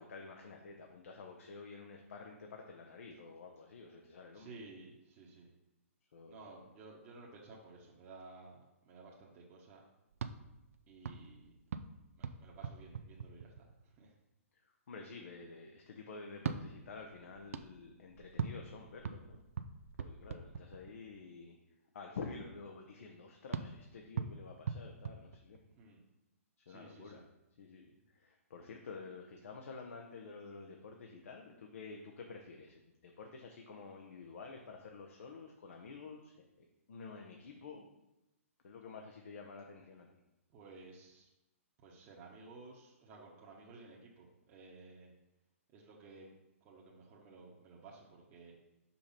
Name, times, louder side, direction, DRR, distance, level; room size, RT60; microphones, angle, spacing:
voice 1, 0.0-4.5 6.1-6.6 14.6-19.4 20.0-21.6 21.9-25.6 26.7-27.2 27.6-36.3 36.9-37.9 38.6-40.1, left 4 dB, 65° left, 2 dB, 1.0 m, -50 dB
voice 2, 4.3-5.5 6.3-9.8 10.9-11.6 12.2-14.2 25.8-26.0 26.7-27.2 40.5-41.3 41.8-45.1 45.7-46.3 46.6-48.5, right 3 dB, 30° right, -4 dB, 1.2 m, -55 dB
sound 1, 10.1-14.0 16.3-21.2 23.5-25.9, right 6 dB, 70° right, 0.5 m, -43 dB
5.6 x 5.2 x 4.3 m, 0.93 s
hypercardioid pair, 135°, 8 cm